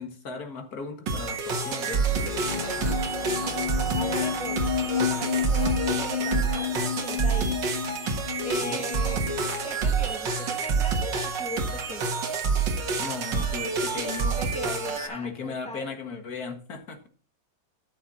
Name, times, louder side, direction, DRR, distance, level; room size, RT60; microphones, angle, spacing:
voice 1, 0.0-2.9 8.6-8.9 13.0-14.4 15.1-17.1, left 4 dB, 55° left, 2.1 m, -37 dB
sound 1, 1.1-15.1, right 4 dB, 80° right, 2.1 m, -28 dB
sound 2, 2.1-9.7, left 8 dB, 75° left, 0.4 m, -31 dB
voice 2, 3.9-4.6 4.9-7.6 8.4-9.2 9.6-12.3 14.4-15.9, left 1 dB, 5° left, 0.5 m, -39 dB
13.0 x 6.3 x 4.1 m
omnidirectional pair, 1.9 m